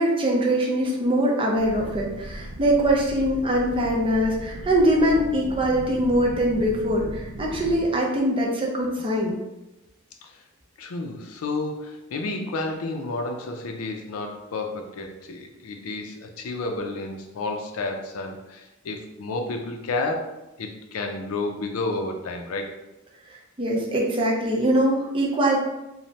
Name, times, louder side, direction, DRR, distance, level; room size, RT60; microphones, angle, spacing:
voice 1, 0.0-9.3 23.3-25.6, right 1 dB, 25° right, -2 dB, 0.5 m, -22 dB
sound 1, 1.5-7.9, equal, 85° right, 0.5 m, -38 dB
voice 2, 10.8-20.3 20.6-22.7, left 2 dB, 90° left, 3 dB, 0.4 m, -31 dB
3.1 x 2.1 x 2.7 m, 0.98 s
head